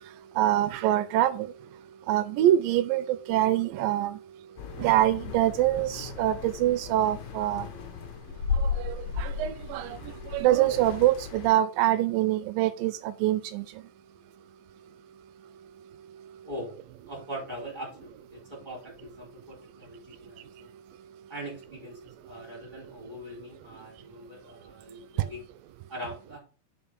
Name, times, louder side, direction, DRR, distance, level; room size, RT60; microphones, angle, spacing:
voice 1, 0.4-1.5 2.1-4.2 4.8-7.7 8.6-10.0 10.3-13.7, right 13 dB, 80° right, 14 dB, 2.1 m, -25 dB
sound 1, 4.6-11.5, left 5 dB, 65° left, 2.1 m, -35 dB
voice 2, 16.4-16.8 17.0-20.7 21.3-25.4 25.9-26.4, equal, 10° right, -2 dB, 3.9 m, -41 dB
7.0 x 5.3 x 5.1 m, 0.37 s
omnidirectional pair, 4.2 m